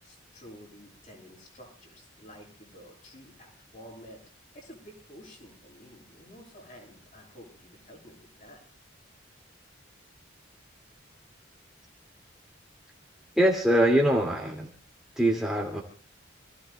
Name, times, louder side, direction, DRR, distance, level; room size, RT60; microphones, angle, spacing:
voice 1, 0.0-4.2 4.5-8.6, equal, 40° left, 0 dB, 6.7 m, -50 dB
voice 2, 13.4-14.7 15.2-15.8, right 1 dB, 5° right, -2 dB, 2.2 m, -23 dB
29.0 x 16.5 x 2.3 m, 0.40 s
head